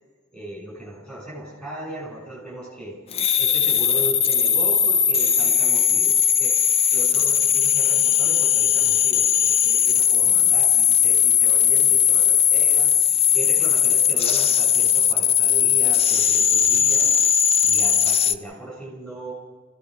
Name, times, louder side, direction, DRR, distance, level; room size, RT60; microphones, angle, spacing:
voice 1, 0.3-6.5 6.9-17.2 17.6-19.3, right 1 dB, 5° left, -1 dB, 6.1 m, -37 dB
sound 1, 3.1-18.3, left 9 dB, 30° left, 0.5 m, -18 dB
27.0 x 16.0 x 6.4 m, 1.4 s
head